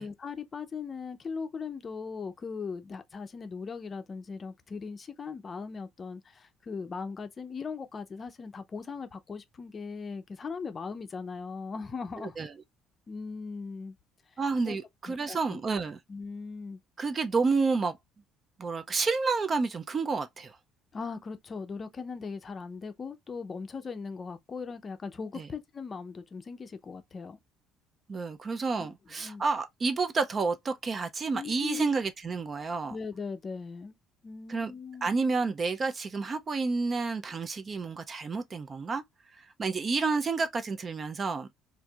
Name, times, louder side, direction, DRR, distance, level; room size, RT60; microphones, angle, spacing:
voice 1, 0.0-12.4 13.1-13.9 14.7-14.8 15.1-15.6 16.1-16.8 20.9-27.4 28.8-28.9 29.2-29.4 31.3-31.8 32.9-34.0 34.2-35.2, left 5 dB, 30° left, 0.5 m, -39 dB
voice 2, 12.2-12.5 14.4-16.0 17.0-18.0 18.6-20.6 25.4-25.5 28.1-33.0 34.5-34.7 35.0-39.0 39.4-41.5, right 4 dB, 30° right, 0.4 m, -30 dB
4.3 x 2.6 x 2.3 m
cardioid pair, 135°, 0 cm